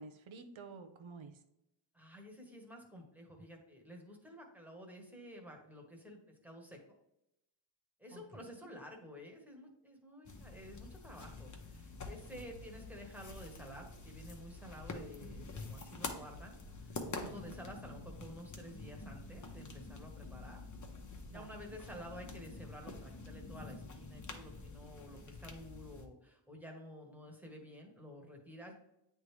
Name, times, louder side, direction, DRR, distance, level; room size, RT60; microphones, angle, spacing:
voice 1, 0.0-1.4 8.1-8.2 8.6-8.7 17.2-17.6 21.3-21.8, right 4 dB, 75° right, 8 dB, 0.8 m, -51 dB
voice 2, 1.9-6.8 8.0-20.6 21.3-28.7, equal, 5° right, 1 dB, 1.3 m, -51 dB
sound 1, 10.3-26.1, left 3 dB, 40° left, 0.9 m, -47 dB
9.0 x 3.3 x 3.2 m, 0.84 s
wide cardioid pair, 105°, 47 cm